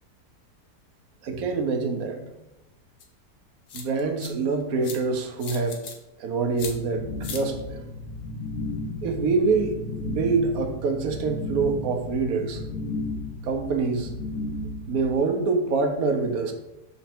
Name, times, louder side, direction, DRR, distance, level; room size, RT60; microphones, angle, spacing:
voice 1, 1.2-2.2 3.7-5.8 6.2-7.8 9.0-12.6 13.4-14.1 14.9-16.5, right 4 dB, 65° right, 6 dB, 1.1 m, -25 dB
sound 1, 3.0-3.1 3.7-4.3 4.8-5.0 5.4-5.9 6.6-6.7 7.2-7.4, left 6 dB, 70° left, 1.4 m, -37 dB
sound 2, 6.5-15.1, left 2 dB, 45° left, 1.8 m, -34 dB
6.0 x 4.0 x 4.5 m, 0.91 s
omnidirectional pair, 1.8 m